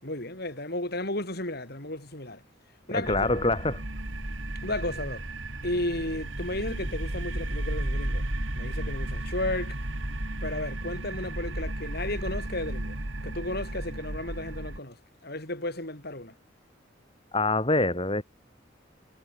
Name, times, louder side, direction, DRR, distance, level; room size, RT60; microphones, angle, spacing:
voice 1, 0.0-2.4 2.9-3.1 4.6-5.3 5.6-8.3 8.6-9.8 10.4-13.0 13.2-16.3, left 1 dB, 55° left, 7.8 m, -33 dB
voice 2, 2.9-3.9 17.3-18.2, left 2 dB, 30° left, 4.1 m, -25 dB
sound 1, 3.0-14.8, right 1 dB, 85° right, 2.9 m, -33 dB
head